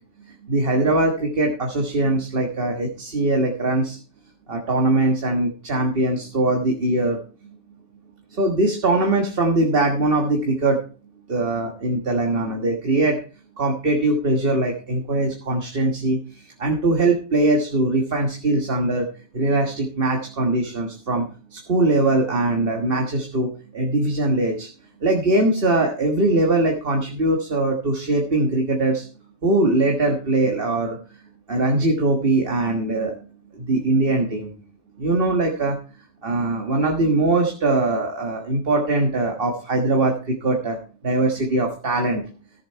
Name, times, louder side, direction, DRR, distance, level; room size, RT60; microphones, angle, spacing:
voice 1, 0.2-4.0 4.5-7.2 8.3-10.8 11.3-13.2 13.6-19.1 19.3-24.7 25.0-29.1 29.4-31.0 31.5-33.1 33.5-34.5 35.0-35.8 36.2-40.8 41.0-42.3, right 2 dB, 55° right, 2 dB, 1.7 m, -21 dB
14.5 x 7.4 x 4.6 m, 0.38 s
omnidirectional pair, 1.2 m